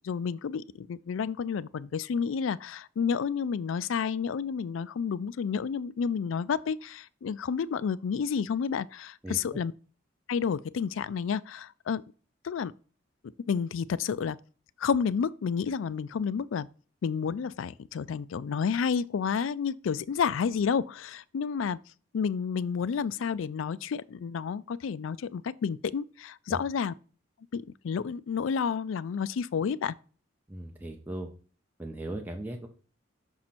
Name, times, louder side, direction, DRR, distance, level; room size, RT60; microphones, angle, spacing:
voice 1, 0.0-9.7 10.3-12.0 12.4-12.7 13.5-14.4 14.8-16.7 17.0-21.8 22.1-26.9 27.5-29.9, left 6 dB, 75° left, 0.4 m, -30 dB
voice 2, 30.5-31.3 31.8-32.7, right 1 dB, 10° right, 0.7 m, -37 dB
6.3 x 4.4 x 4.2 m
head